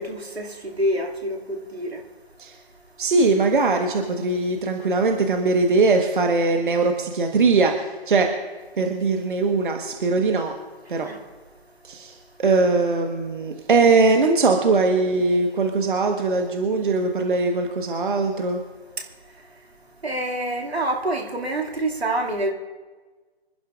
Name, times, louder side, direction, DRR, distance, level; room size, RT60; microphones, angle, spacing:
voice 1, 0.0-2.0 11.0-11.2 20.0-22.5, right 1 dB, 75° right, 1 dB, 2.4 m, -27 dB
voice 2, 3.0-8.3 8.8-10.5 10.9-11.1 11.8-18.6, right 3 dB, 50° right, 4 dB, 1.3 m, -21 dB
26.0 x 12.0 x 2.5 m, 1.3 s
figure-of-eight pair, 150°, 32 cm